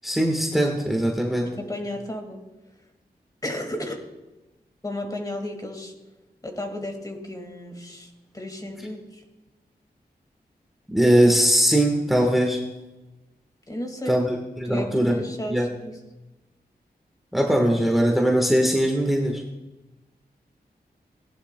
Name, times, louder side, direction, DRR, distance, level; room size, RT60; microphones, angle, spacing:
voice 1, 0.0-1.6 10.9-12.6 14.1-15.2 15.5-15.7 17.3-19.4, equal, ahead, 1 dB, 1.4 m, -21 dB
voice 2, 1.6-2.4 3.4-4.0 4.8-5.9 6.4-9.2 13.7-14.2 14.7-16.0, left 1 dB, 20° left, 3 dB, 2.0 m, -33 dB
18.0 x 11.5 x 2.2 m, 1.1 s
wide cardioid pair, 80°, 17 cm